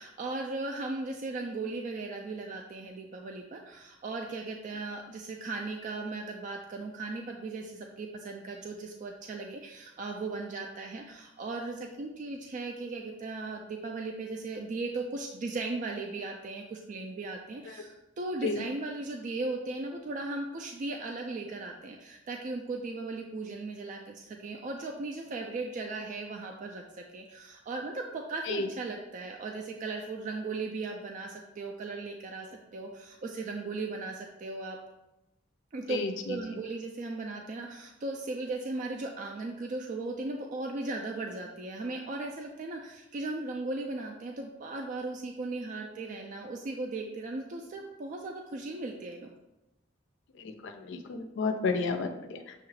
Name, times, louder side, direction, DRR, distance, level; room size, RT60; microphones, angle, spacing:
voice 1, 0.0-34.8 35.7-36.0 36.3-49.3, right 3 dB, 40° right, 2 dB, 0.3 m, -37 dB
voice 2, 35.9-36.4 50.4-52.5, left 4 dB, 65° left, 6 dB, 0.4 m, -32 dB
6.6 x 2.4 x 3.1 m, 0.93 s
head